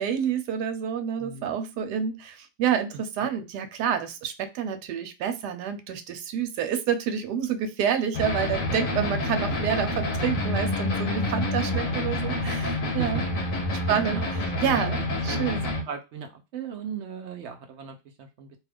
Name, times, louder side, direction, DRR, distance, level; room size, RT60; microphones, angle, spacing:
voice 1, 0.0-13.2 13.9-14.2 14.6-15.0 15.2-15.6, right 8 dB, 85° right, 8 dB, 1.2 m, -28 dB
voice 2, 1.2-1.6 9.1-9.6 12.8-13.2 13.9-14.3 14.6-14.7 15.2-18.6, right 6 dB, 65° right, 5 dB, 0.7 m, -38 dB
sound 1, 8.1-15.8, left 1 dB, 60° left, 1.1 m, -28 dB
2.8 x 2.3 x 3.3 m, 0.26 s
omnidirectional pair, 1.7 m